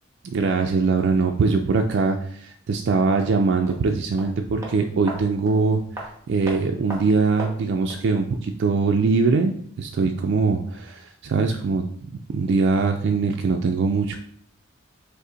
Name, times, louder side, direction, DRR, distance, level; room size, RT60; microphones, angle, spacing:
voice 1, 0.2-5.8 6.3-14.2, right 4 dB, 60° right, 3 dB, 0.3 m, -22 dB
sound 1, 3.1-8.1 8.4-8.5, right 1 dB, 15° right, 1.0 m, -39 dB
5.3 x 2.1 x 3.8 m, 0.65 s
head